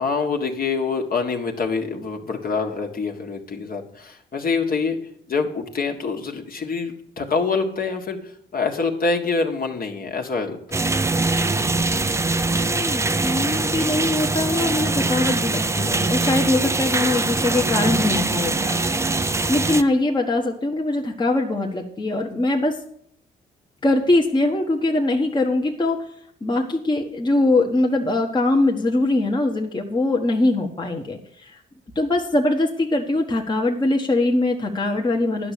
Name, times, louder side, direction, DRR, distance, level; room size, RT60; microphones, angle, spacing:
voice 1, 0.0-5.0 5.3-10.8, left 4 dB, 45° left, 3 dB, 1.7 m, -25 dB
sound 1, 10.7-19.8, right 3 dB, 15° right, 0.6 m, -22 dB
voice 2, 12.6-18.8 19.5-22.8 23.8-26.0 26.4-31.6 31.9-35.5, left 2 dB, 20° left, 1 dB, 1.3 m, -22 dB
11.0 x 6.0 x 8.4 m, 0.66 s
cardioid pair, 90°, 20 cm